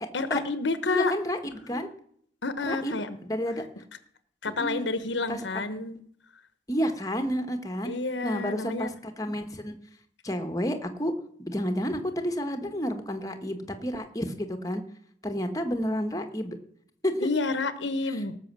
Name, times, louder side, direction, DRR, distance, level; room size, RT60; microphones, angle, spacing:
voice 1, 0.1-1.1 2.4-3.2 4.4-6.0 7.8-8.9 17.2-18.4, left 3 dB, 85° left, 12 dB, 1.2 m, -29 dB
voice 2, 0.9-1.9 2.6-3.6 4.5-4.9 5.3-5.6 6.7-7.9 8.2-9.7 10.2-11.1 11.4-14.8 15.2-16.6 17.0-17.3 18.1-18.2, equal, 20° left, 6 dB, 1.4 m, -30 dB
18.0 x 6.5 x 7.5 m, 0.63 s
head